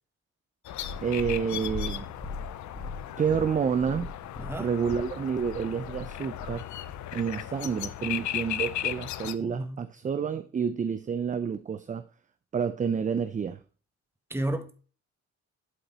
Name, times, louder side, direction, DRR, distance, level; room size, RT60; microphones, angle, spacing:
sound 1, 0.6-9.3, left 12 dB, 70° left, 0.6 m, -37 dB
Purr, 0.7-7.0 7.8-7.9, left 3 dB, 15° left, 1.9 m, -40 dB
voice 1, 1.0-2.1 3.2-4.1 4.6-6.7 7.1-12.1 12.5-13.6, right 6 dB, 25° right, 0.4 m, -29 dB
voice 2, 9.2-9.9 14.3-14.8, right 1 dB, 10° right, 1.2 m, -33 dB
11.5 x 4.0 x 4.1 m
cardioid pair, 90°, 30 cm